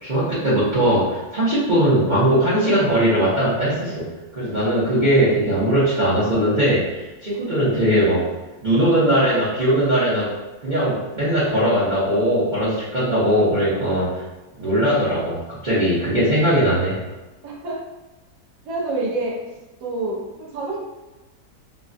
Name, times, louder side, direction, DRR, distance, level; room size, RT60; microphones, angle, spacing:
voice 1, 0.0-4.1 4.3-8.2 8.6-10.3 10.6-14.2 14.6-17.0, right 1 dB, 40° right, -11 dB, 0.7 m, -19 dB
voice 2, 17.4-17.8 18.6-19.4 19.8-20.8, right 2 dB, 80° right, -4 dB, 1.4 m, -27 dB
3.5 x 2.1 x 2.5 m, 1.1 s
omnidirectional pair, 1.8 m